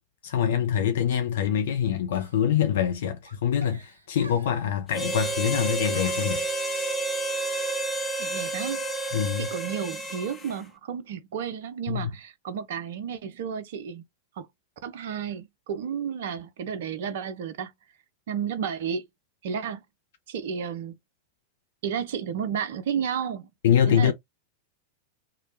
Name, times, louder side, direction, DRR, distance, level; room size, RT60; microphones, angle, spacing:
voice 1, 0.2-6.4 9.1-9.5 11.9-12.1 23.6-24.1, left 9 dB, 55° left, 0.5 m, -24 dB
Giggle, 2.1-3.0 3.2-4.7 5.3-6.5, right 2 dB, 75° right, 0.7 m, -47 dB
Harmonica, 4.9-10.6, right 2 dB, 15° left, 0.6 m, -30 dB
voice 2, 8.2-8.8 9.4-14.0 14.4-14.5 14.8-17.7 18.3-19.0 19.4-19.8 20.3-20.9 21.8-23.5 23.9-24.1, right 7 dB, 55° right, 0.4 m, -32 dB
2.9 x 2.1 x 2.5 m
figure-of-eight pair, 90°, 0 cm